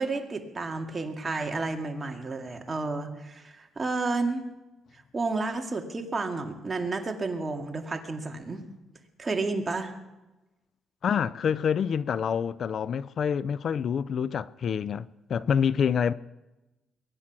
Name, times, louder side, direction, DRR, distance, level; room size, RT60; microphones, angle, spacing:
voice 1, 0.0-4.4 5.1-8.6 9.2-9.9, right 3 dB, 30° right, 2.2 m, -31 dB
voice 2, 11.0-16.1, left 7 dB, 55° left, 0.4 m, -27 dB
22.5 x 10.0 x 6.0 m
cardioid pair, 90°, 0 cm